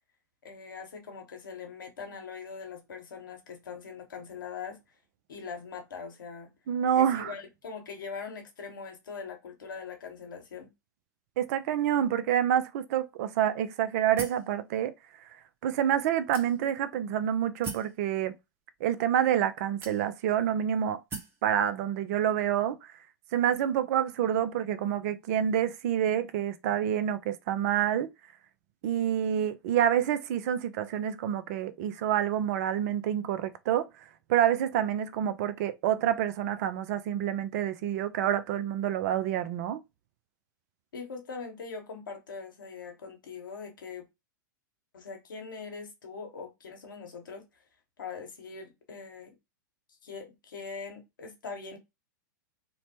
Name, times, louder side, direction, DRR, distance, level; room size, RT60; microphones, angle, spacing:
voice 1, 0.4-4.8 5.3-6.5 6.9-10.7 40.9-44.0 44.9-47.5 48.0-49.3 50.0-51.8, left 5 dB, 75° left, 1.0 m, -42 dB
voice 2, 6.7-7.3 11.4-14.9 15.6-18.3 18.8-21.0 21.4-22.8 23.3-28.1 28.8-33.9 34.3-39.8, right 10 dB, 50° right, 0.4 m, -27 dB
sound 1, 14.2-14.5 15.3-15.4 16.3-16.8 17.6-18.0 18.9-19.0 19.8-20.3 21.1-21.4, right 4 dB, 20° right, 0.8 m, -40 dB
2.9 x 2.0 x 2.8 m
hypercardioid pair, 100°, 11 cm